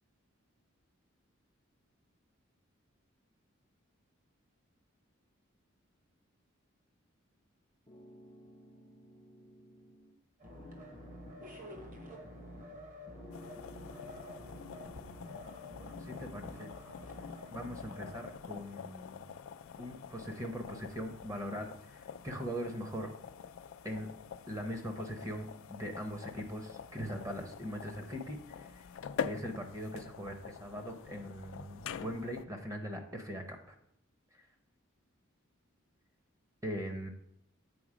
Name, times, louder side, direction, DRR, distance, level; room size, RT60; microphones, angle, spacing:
sound 1, 7.9-10.2 10.5-12.8 13.1-15.2, equal, 20° left, 0.5 m, -56 dB
sound 2, 10.4-18.3, left 1 dB, 40° right, 1.1 m, -49 dB
sound 3, 13.3-32.4, left 7 dB, 80° left, 0.4 m, -46 dB
voice 1, 15.8-16.7 17.5-19.3 19.8-23.1 23.8-24.1 24.5-28.9 29.2-33.7 34.3-34.5 36.6-37.1, equal, 15° right, 5 dB, 0.7 m, -41 dB
8.5 x 3.8 x 5.0 m, 0.74 s
head